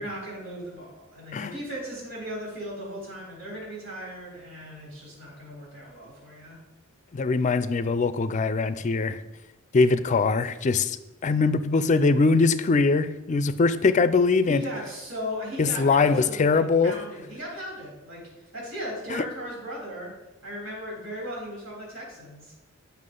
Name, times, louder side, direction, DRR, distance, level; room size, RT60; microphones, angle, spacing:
voice 1, 0.0-6.6 14.5-20.1 20.4-22.5, equal, 80° right, -5 dB, 3.1 m, -37 dB
voice 2, 7.1-9.2 9.7-11.0 11.2-14.6 15.6-17.0 19.1-19.2, left 4 dB, 35° left, 14 dB, 0.4 m, -22 dB
9.5 x 5.8 x 3.8 m, 0.97 s
head